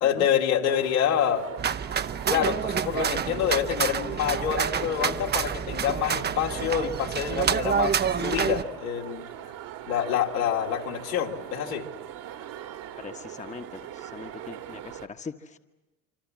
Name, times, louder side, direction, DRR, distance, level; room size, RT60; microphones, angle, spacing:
voice 1, 0.0-1.5 2.3-9.2 9.9-11.8, left 9 dB, 75° left, 0 dB, 2.6 m, -27 dB
sound 1, 0.6-15.1, right 11 dB, 50° right, 1.7 m, -41 dB
sound 2, 1.6-8.6, right 7 dB, 25° right, 0.8 m, -28 dB
voice 2, 13.0-15.6, left 5 dB, 15° left, 7 dB, 1.2 m, -41 dB
26.5 x 25.5 x 7.5 m, 1.1 s
hypercardioid pair, 70°, 43 cm